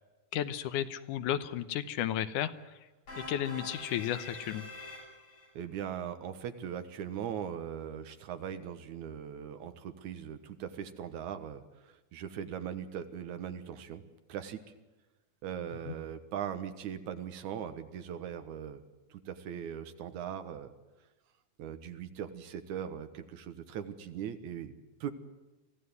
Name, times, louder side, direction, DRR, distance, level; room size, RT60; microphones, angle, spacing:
voice 1, 0.3-2.5 3.2-4.7 15.9-16.0, left 11 dB, 85° left, 13 dB, 2.5 m, -33 dB
sound 1, 3.1-5.5, left 2 dB, 60° left, 9.0 m, -45 dB
voice 2, 5.5-14.0 14.3-14.6 15.4-18.8 19.1-20.7 21.6-24.7 25.0-25.1, right 9 dB, 75° right, 9 dB, 2.7 m, -40 dB
24.0 x 15.5 x 9.6 m, 1.1 s
omnidirectional pair, 3.5 m